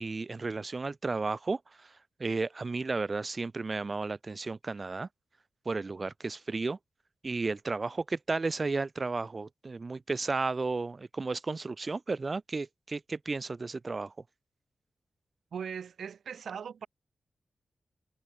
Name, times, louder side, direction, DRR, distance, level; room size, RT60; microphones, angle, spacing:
voice 1, 0.0-1.6 2.2-5.1 5.7-6.8 7.2-14.1, right 3 dB, 35° right, 0.4 m, -33 dB
voice 2, 15.5-16.9, right 7 dB, 90° right, 0.5 m, -39 dB
wide cardioid pair, 125°, 0 cm